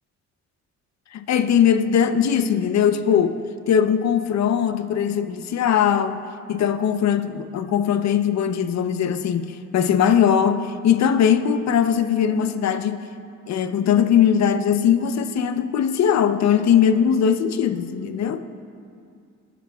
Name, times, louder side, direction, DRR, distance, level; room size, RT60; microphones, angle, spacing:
voice 1, 1.1-3.4 3.7-6.2 6.5-9.5 9.7-13.0 13.5-18.4, left 8 dB, 60° left, 9 dB, 0.8 m, -20 dB
20.0 x 11.0 x 2.4 m, 2.4 s
cardioid pair, 90°, 30 cm